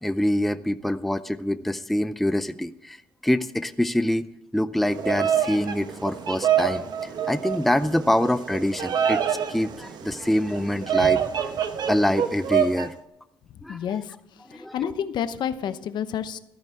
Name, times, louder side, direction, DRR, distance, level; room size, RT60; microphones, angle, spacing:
voice 1, 0.0-3.0 3.2-4.2 4.5-11.2 11.9-12.9 13.6-14.0 14.5-14.7, left 1 dB, ahead, 12 dB, 0.5 m, -25 dB
Bird vocalization bird call bird song, 4.8-12.9, right 8 dB, 55° right, 1.1 m, -26 dB
voice 2, 13.7-14.1 14.5-16.4, left 8 dB, 60° left, 11 dB, 0.9 m, -29 dB
14.0 x 13.0 x 3.5 m, 0.86 s
cardioid pair, 105°, 8 cm